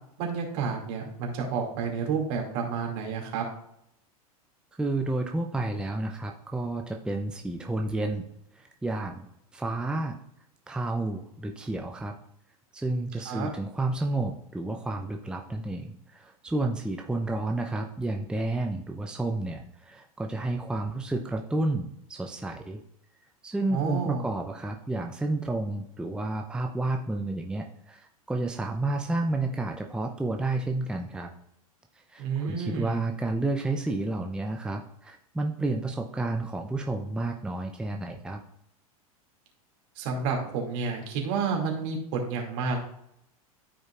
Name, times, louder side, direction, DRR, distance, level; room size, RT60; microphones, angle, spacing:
voice 1, 0.2-3.4 13.3-13.5 23.7-24.2 32.2-33.0 40.0-42.8, right 5 dB, 55° right, 1 dB, 2.4 m, -30 dB
voice 2, 4.8-8.2 8.5-9.3 9.5-10.2 10.7-12.1 12.7-22.8 23.4-31.3 32.1-38.4, right 2 dB, 5° right, 3 dB, 0.6 m, -31 dB
13.5 x 5.1 x 2.4 m, 0.76 s
figure-of-eight pair, 90°, 19 cm